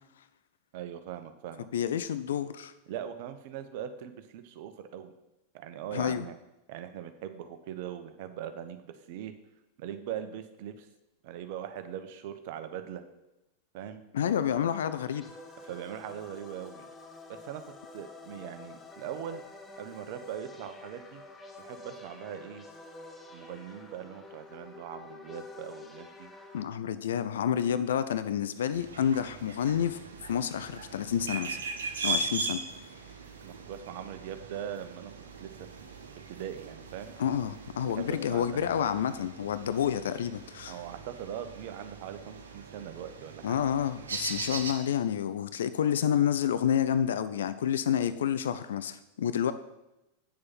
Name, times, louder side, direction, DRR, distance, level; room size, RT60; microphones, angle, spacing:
voice 1, 0.7-1.7 2.9-5.1 5.5-6.4 6.7-9.3 9.8-10.9 11.2-13.0 13.7-14.0 15.6-16.9 17.3-17.6 17.9-19.4 19.8-21.2 21.6-22.6 23.3-26.3 33.4-35.1 35.4-35.5 35.8-35.9 36.3-37.1 37.8-38.7 40.7-43.6, right 9 dB, 50° right, 9 dB, 0.9 m, -41 dB
voice 2, 1.7-2.7 5.9-6.2 14.1-15.3 26.5-30.0 30.3-31.6 32.0-32.6 37.2-40.7 43.4-49.5, left 9 dB, 60° left, 12 dB, 0.5 m, -29 dB
sound 1, 14.5-26.6, left 3 dB, 15° left, 1.0 m, -49 dB
sound 2, 28.7-44.7, right 3 dB, 65° right, 1.2 m, -40 dB
8.8 x 6.7 x 5.4 m, 0.93 s
figure-of-eight pair, 90°, 0 cm